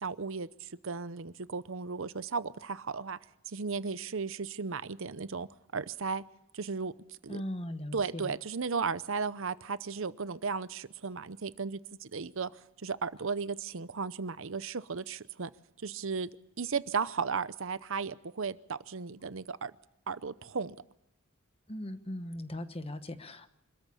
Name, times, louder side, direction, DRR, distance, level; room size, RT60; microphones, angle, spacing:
voice 1, 0.0-3.2 3.5-6.2 6.5-7.4 7.9-12.5 12.8-15.5 15.8-16.3 16.6-19.7 20.1-20.8, right 5 dB, 65° right, 0.7 m, -35 dB
voice 2, 7.3-8.3 21.7-23.5, left 1 dB, 30° left, 1.2 m, -39 dB
26.0 x 14.0 x 8.6 m
head